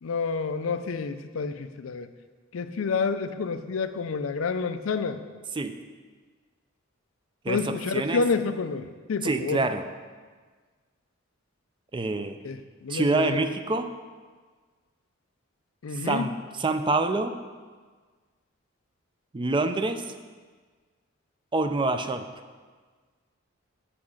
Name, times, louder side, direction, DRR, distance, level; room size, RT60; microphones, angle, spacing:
voice 1, 0.0-2.1 2.5-5.2 7.5-9.6 12.4-13.5 15.8-16.3, left 5 dB, 80° left, 10 dB, 0.5 m, -29 dB
voice 2, 7.4-8.2 9.2-9.9 11.9-12.4 12.9-13.9 15.9-17.4 19.3-20.1 21.5-22.3, right 3 dB, 25° right, 8 dB, 0.4 m, -26 dB
7.1 x 5.9 x 6.4 m, 1.5 s
head